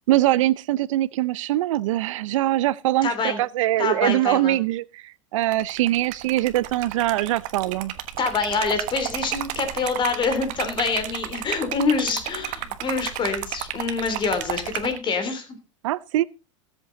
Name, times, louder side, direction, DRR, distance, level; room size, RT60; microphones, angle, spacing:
voice 1, 0.1-7.9 15.8-16.2, right 15 dB, 75° right, 0.6 m, -23 dB
voice 2, 3.0-3.4 3.8-4.6 8.2-15.6, left 4 dB, 30° left, 3.2 m, -26 dB
Liquid, 5.4-15.0, right 13 dB, 50° right, 1.3 m, -32 dB
16.5 x 8.0 x 3.9 m
hypercardioid pair, 115°, 17 cm